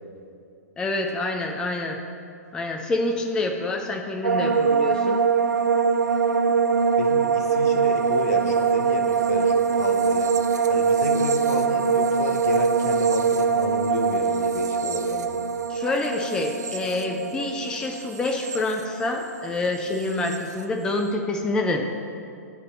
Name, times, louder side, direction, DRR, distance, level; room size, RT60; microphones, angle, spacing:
voice 1, 0.8-2.0 2.5-5.2 15.7-21.8, left 2 dB, 10° left, 3 dB, 0.4 m, -27 dB
sound 1, 4.2-19.5 19.7-20.4, right 6 dB, 90° right, 0.6 m, -23 dB
voice 2, 7.0-10.3 10.7-15.4, left 2 dB, 70° left, 3 dB, 0.9 m, -32 dB
9.6 x 3.5 x 5.8 m, 2.4 s
hypercardioid pair, 145°, 9 cm